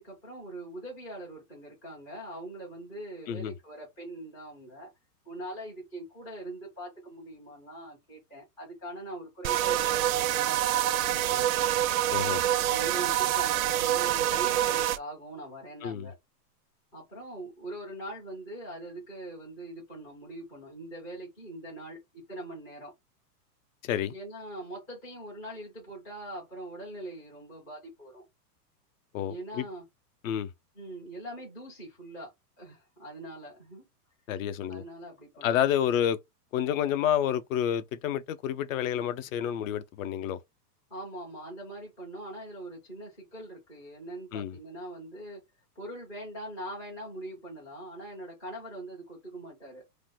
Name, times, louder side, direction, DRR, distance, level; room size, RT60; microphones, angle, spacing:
voice 1, 0.0-4.9 5.2-11.5 12.7-16.1 16.9-22.9 24.1-28.2 29.3-29.8 30.8-32.3 32.6-33.8 34.7-35.6 40.9-45.4 45.8-49.8, right 1 dB, 10° left, 0.3 m, -42 dB
sound 1, 9.4-15.0, right 12 dB, 60° right, 0.5 m, -26 dB
voice 2, 12.1-12.4 15.8-16.1 23.8-24.1 29.1-29.7 30.2-30.5 34.3-34.8 35.4-36.2 36.5-40.4 44.3-44.5, left 10 dB, 55° left, 0.6 m, -29 dB
2.6 x 2.1 x 3.7 m
hypercardioid pair, 145°, 48 cm